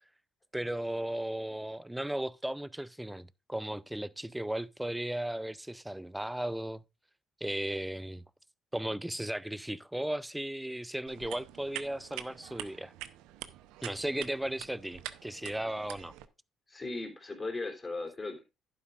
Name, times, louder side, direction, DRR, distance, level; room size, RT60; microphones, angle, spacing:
voice 1, 0.5-6.8 7.4-8.2 8.7-12.9 13.8-16.1, right 1 dB, 5° right, 0.5 m, -36 dB
sound 1, 11.1-16.2, right 13 dB, 75° right, 0.7 m, -45 dB
voice 2, 16.7-18.4, left 3 dB, 25° left, 3.4 m, -37 dB
11.5 x 9.2 x 2.5 m
hypercardioid pair, 55°, 0 cm